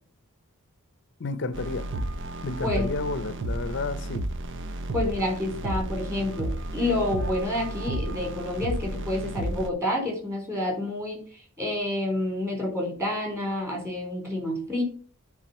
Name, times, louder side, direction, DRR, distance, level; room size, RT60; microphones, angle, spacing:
voice 1, 1.2-1.9 2.4-4.3, left 3 dB, 50° left, 0.6 m, -31 dB
sound 1, 1.5-9.7, right 1 dB, 55° right, 0.7 m, -32 dB
voice 2, 4.9-11.2 11.6-14.8, left 1 dB, 15° right, 3.7 m, -28 dB
9.1 x 3.9 x 5.4 m
head